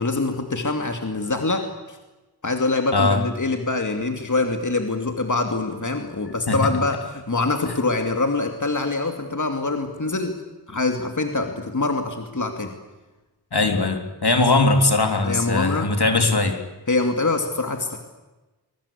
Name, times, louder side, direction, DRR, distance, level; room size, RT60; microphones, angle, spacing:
voice 1, 0.0-2.0 2.4-10.4 10.7-12.7 15.2-15.9 16.9-18.0, left 3 dB, 45° left, 4 dB, 2.5 m, -24 dB
voice 2, 13.5-16.6, left 2 dB, 70° left, 4 dB, 3.5 m, -20 dB
24.5 x 22.5 x 8.6 m, 1.1 s
wide cardioid pair, 55°, 40 cm